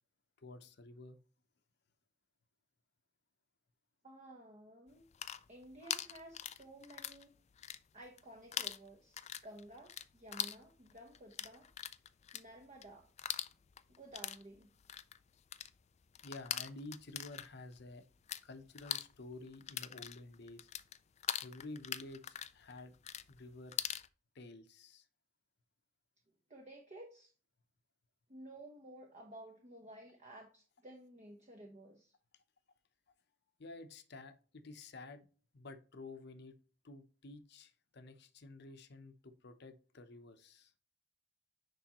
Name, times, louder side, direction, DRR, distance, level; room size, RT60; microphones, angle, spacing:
voice 1, 0.4-1.2 16.2-18.0 18.4-20.7 21.4-22.9 23.3-23.8 24.3-25.1 33.6-35.3 35.5-36.6 36.8-40.7, left 2 dB, 60° left, 9 dB, 0.8 m, -51 dB
voice 2, 4.0-5.0 5.5-7.3 7.9-11.7 12.3-13.1 13.9-14.7 26.5-27.3 28.3-32.1, right 1 dB, 40° right, 2 dB, 0.9 m, -54 dB
sound 1, 5.0-7.2 7.5-8.2 8.5-18.4 18.7-24.1, left 10 dB, 35° left, 0.4 m, -42 dB
9.9 x 3.4 x 3.0 m, 0.38 s
head